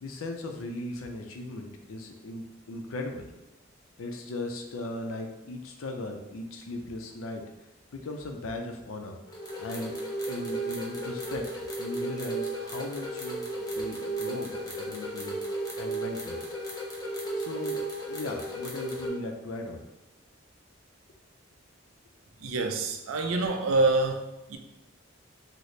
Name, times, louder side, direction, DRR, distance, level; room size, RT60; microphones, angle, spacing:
voice 1, 0.0-3.3 4.0-7.4 7.9-9.2 9.6-9.9 10.2-15.4 15.8-16.4 17.3-19.8, left 2 dB, 80° left, 4 dB, 0.5 m, -38 dB
sound 1, 9.3-19.1, right 1 dB, 20° left, 0.5 m, -34 dB
voice 2, 22.4-24.2 24.5-24.6, right 3 dB, 85° right, 5 dB, 0.4 m, -26 dB
4.0 x 2.0 x 3.1 m, 0.97 s
head